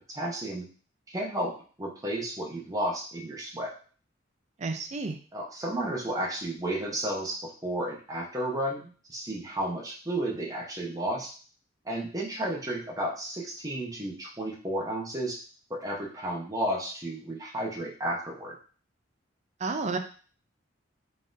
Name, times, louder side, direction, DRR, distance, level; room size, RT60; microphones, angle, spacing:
voice 1, 0.1-0.7 1.1-3.7 5.3-11.3 11.8-15.4 15.7-18.5, right 1 dB, 20° right, -2 dB, 0.8 m, -32 dB
voice 2, 4.6-5.2 19.6-20.0, right 3 dB, 35° right, 6 dB, 0.4 m, -31 dB
4.0 x 3.7 x 2.6 m, 0.40 s
head